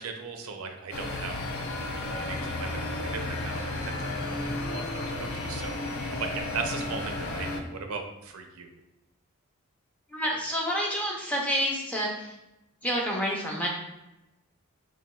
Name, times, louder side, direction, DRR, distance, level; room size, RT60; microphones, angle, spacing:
voice 1, 0.0-4.1 4.7-8.7, right 5 dB, 70° right, 4 dB, 0.5 m, -38 dB
sound 1, 0.9-7.6, left 2 dB, 70° left, 0.5 m, -33 dB
voice 2, 10.1-12.3 12.8-13.7, equal, 5° left, -2 dB, 0.5 m, -28 dB
5.8 x 2.3 x 2.2 m, 0.93 s
head